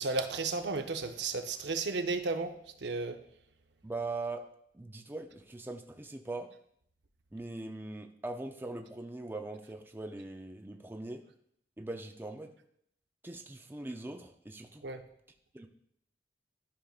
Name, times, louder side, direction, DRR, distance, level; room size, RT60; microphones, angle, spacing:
voice 1, 0.0-2.5 2.8-3.2 14.8-15.0, right 3 dB, 80° right, 7 dB, 0.7 m, -33 dB
voice 2, 3.8-4.4 4.7-6.5 7.3-11.2 11.8-12.5 13.2-14.8 15.5-15.7, right 2 dB, 10° right, 4 dB, 0.4 m, -41 dB
13.0 x 5.2 x 2.4 m, 0.70 s
head